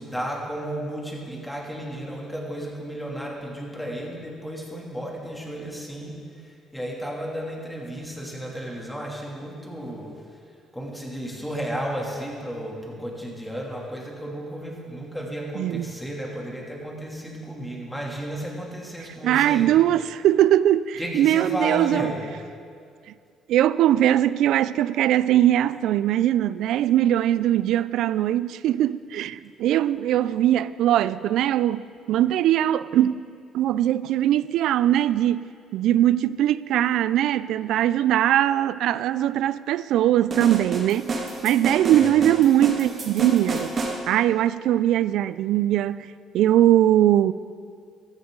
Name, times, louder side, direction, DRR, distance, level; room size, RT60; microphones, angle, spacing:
voice 1, 0.0-10.4 10.7-19.7 21.0-22.2 41.9-42.2, equal, 5° left, 2.8 m, -33 dB
voice 2, 19.2-22.1 23.5-33.2 33.5-41.1 41.4-43.7 44.1-47.3, right 12 dB, 75° right, 0.3 m, -21 dB
sound 1, 40.3-44.0, right 3 dB, 45° right, 2.0 m, -29 dB
14.5 x 13.5 x 3.9 m
cardioid pair, 100°, 0 cm